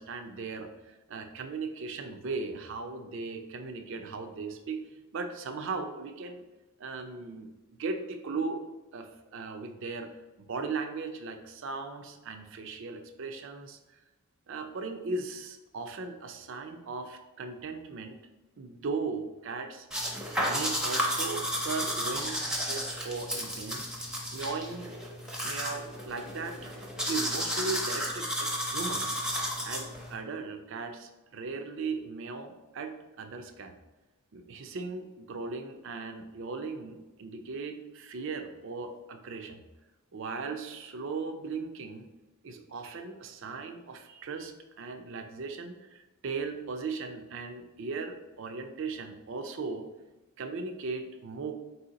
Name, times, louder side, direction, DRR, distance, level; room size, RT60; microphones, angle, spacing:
voice 1, 0.0-6.4 6.8-10.1 10.5-14.0 14.5-18.2 18.6-19.9 20.5-23.9 24.3-25.0 25.4-26.7 27.1-29.2 29.6-33.7 34.3-39.6 40.1-42.1 42.4-49.9 50.4-51.5, right 4 dB, 60° right, 7 dB, 0.4 m, -38 dB
sound 1, 19.9-30.1, equal, 5° right, 0.6 m, -33 dB
4.2 x 2.7 x 3.9 m, 1.1 s
head